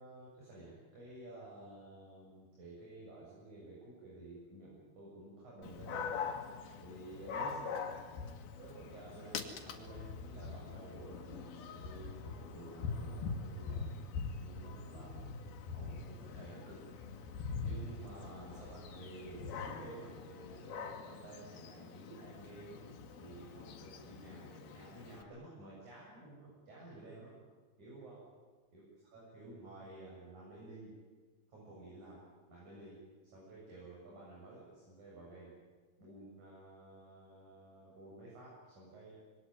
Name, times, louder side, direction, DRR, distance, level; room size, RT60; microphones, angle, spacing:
voice 1, 0.0-6.2 6.8-7.8 8.6-13.9 14.4-15.2 15.7-22.8 23.2-27.3 27.8-28.2 28.7-28.8 29.1-31.0 31.5-33.0 33.3-35.5 36.0-39.1, right 2 dB, 50° right, -5 dB, 9.0 m, -52 dB
Dog, 5.6-25.2, left 5 dB, 75° left, 3.8 m, -43 dB
26.0 x 22.5 x 9.5 m, 1.4 s
omnidirectional pair, 4.4 m